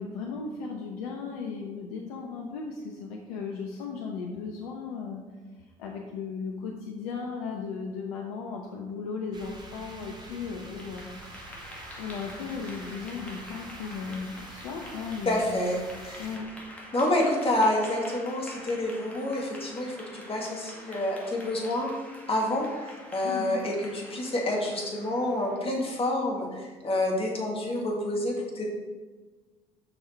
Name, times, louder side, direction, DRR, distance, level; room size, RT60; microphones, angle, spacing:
voice 1, 0.0-5.2 5.8-11.5 12.0-15.6 16.2-16.5 23.2-23.6, left 5 dB, 70° left, 1 dB, 0.8 m, -36 dB
sound 1, 9.3-16.4, right 2 dB, 25° right, 2.1 m, -47 dB
Clapping / Applause, 10.6-25.8, equal, 10° left, 2.1 m, -47 dB
voice 2, 15.3-16.3 16.9-21.9 22.3-28.7, left 1 dB, 30° left, -1 dB, 2.2 m, -28 dB
7.0 x 5.6 x 4.6 m, 1.3 s
figure-of-eight pair, 55°, 19 cm